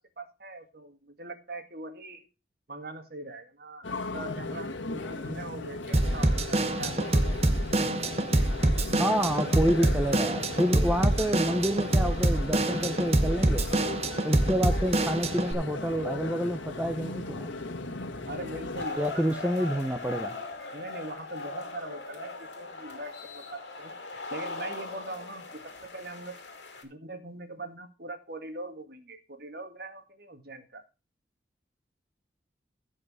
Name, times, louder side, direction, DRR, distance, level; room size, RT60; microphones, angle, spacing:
voice 1, 0.0-2.3 2.7-7.2 18.3-19.7 20.7-23.9 24.3-26.4 26.8-30.8, right 2 dB, 55° right, 7 dB, 2.0 m, -41 dB
sound 1, 3.8-18.9, left 2 dB, 85° left, 1.6 m, -37 dB
Drum kit / Drum, 5.9-15.5, right 1 dB, 35° right, 1.0 m, -26 dB
voice 2, 9.0-13.6 14.2-17.5 19.0-20.4, equal, 10° right, 6 dB, 0.8 m, -28 dB
sound 2, 18.7-26.8, left 3 dB, 65° left, 3.0 m, -40 dB
15.0 x 5.3 x 4.9 m, 0.29 s
head